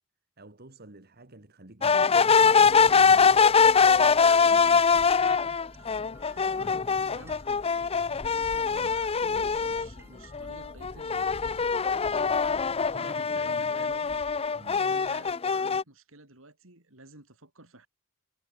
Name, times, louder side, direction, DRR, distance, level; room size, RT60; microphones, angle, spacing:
voice 1, 0.4-2.3 8.6-9.1 13.3-13.5 14.5-15.0, right 2 dB, 50° right, 2.3 m, -50 dB
sound 1, 1.8-9.9 10.3-15.8, left 5 dB, 30° left, 0.6 m, -23 dB
voice 2, 2.5-5.5 6.2-7.7 8.4-11.4 11.7-14.2 14.7-17.9, right 2 dB, 70° right, 6.4 m, -51 dB
sound 2, 2.7-12.6, right 1 dB, 10° right, 3.4 m, -54 dB
head